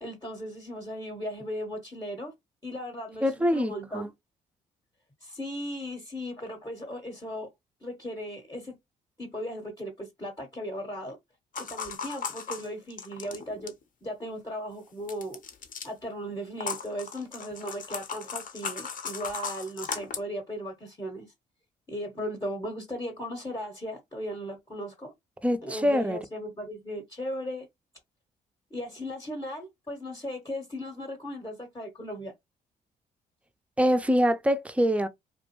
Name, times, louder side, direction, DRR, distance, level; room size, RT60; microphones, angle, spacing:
voice 1, 0.0-2.3 2.6-4.1 5.2-7.5 7.8-8.7 9.2-11.2 11.6-13.7 14.0-15.4 15.8-21.3 21.9-25.1 25.6-27.7 28.7-32.3, equal, 20° left, 0.8 m, -37 dB
voice 2, 3.2-4.1 25.4-26.2 33.8-35.1, equal, 5° right, 0.4 m, -24 dB
sound 1, 11.5-13.8 15.1-15.9 16.6-20.2, left 6 dB, 50° left, 0.7 m, -37 dB
2.5 x 2.1 x 2.9 m
hypercardioid pair, 50°, 18 cm